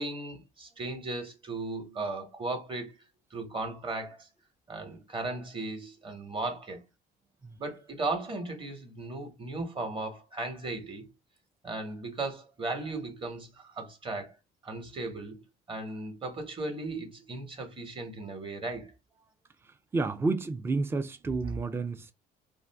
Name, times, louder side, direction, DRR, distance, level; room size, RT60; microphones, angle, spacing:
voice 1, 0.0-2.9 3.3-4.3 4.7-6.8 7.6-11.1 11.6-14.4 14.6-15.4 15.7-18.9, right 2 dB, 30° right, 1.1 m, -36 dB
voice 2, 19.9-22.1, right 3 dB, 15° right, 0.4 m, -30 dB
2.5 x 2.5 x 3.3 m
cardioid pair, 105°, 17 cm